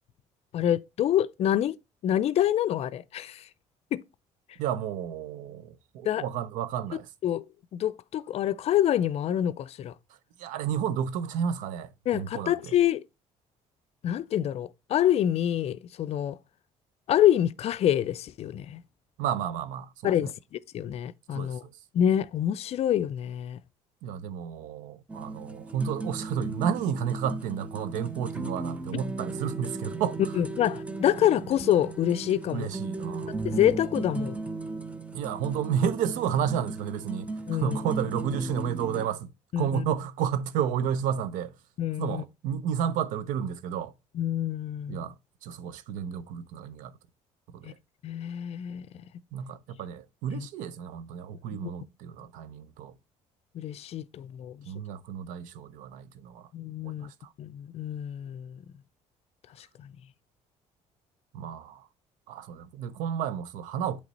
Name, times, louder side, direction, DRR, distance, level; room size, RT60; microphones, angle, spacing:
voice 1, 0.5-1.8 2.0-3.4 3.9-4.0 6.0-6.2 7.2-7.4 7.7-9.9 12.1-13.0 14.0-16.4 17.1-18.8 20.0-21.6 21.9-23.6 28.9-29.0 30.3-32.7 33.4-34.4 37.5-37.8 39.5-39.8 41.8-42.2 44.1-45.1 47.6-47.7 48.0-48.9 50.3-50.5 51.5-51.7 53.5-54.7 56.5-57.1 57.4-58.6 59.6-59.9, left 11 dB, 55° left, 0.4 m, -27 dB
voice 2, 4.6-7.1 10.4-12.5 19.2-20.3 21.3-21.7 24.0-30.2 32.5-33.3 35.1-39.3 39.6-41.5 42.0-43.9 44.9-45.1 45.4-47.0 47.5-47.7 49.3-52.9 54.7-56.5 56.8-57.1 61.3-61.9 62.3-64.0, right 8 dB, 85° right, 0.6 m, -31 dB
sound 1, 25.1-39.1, right 3 dB, 10° right, 0.6 m, -36 dB
8.2 x 3.3 x 4.0 m
cardioid pair, 95°, 13 cm